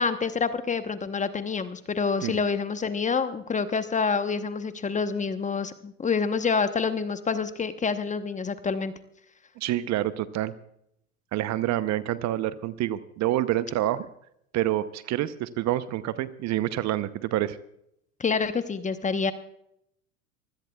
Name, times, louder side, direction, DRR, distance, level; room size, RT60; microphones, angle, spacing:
voice 1, 0.0-8.9 18.2-19.3, left 5 dB, 15° left, 11 dB, 1.0 m, -27 dB
voice 2, 9.6-10.5 11.3-14.1 14.5-17.6, right 13 dB, 40° right, 14 dB, 0.8 m, -27 dB
24.5 x 16.0 x 2.4 m, 0.74 s
hypercardioid pair, 95°, 44 cm